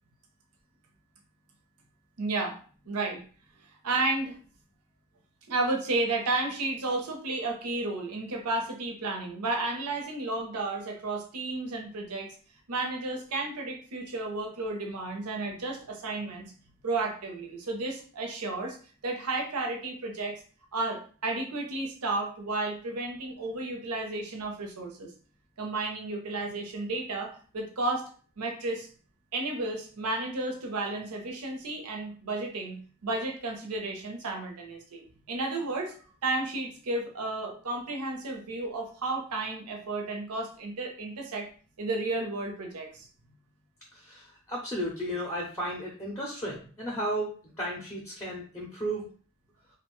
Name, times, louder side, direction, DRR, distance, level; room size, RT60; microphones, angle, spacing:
voice 1, 2.2-2.6 2.9-3.2 3.8-4.4 5.5-12.4 12.7-16.5 16.8-18.8 19.0-20.4 20.7-25.1 25.6-28.0 28.4-28.9 29.3-35.9 36.2-41.5 41.8-43.1, right 2 dB, 90° right, 2 dB, 0.7 m, -32 dB
voice 2, 43.9-47.3 47.6-49.0, right 1 dB, 10° left, -3 dB, 0.5 m, -34 dB
2.5 x 2.2 x 3.0 m, 0.42 s
head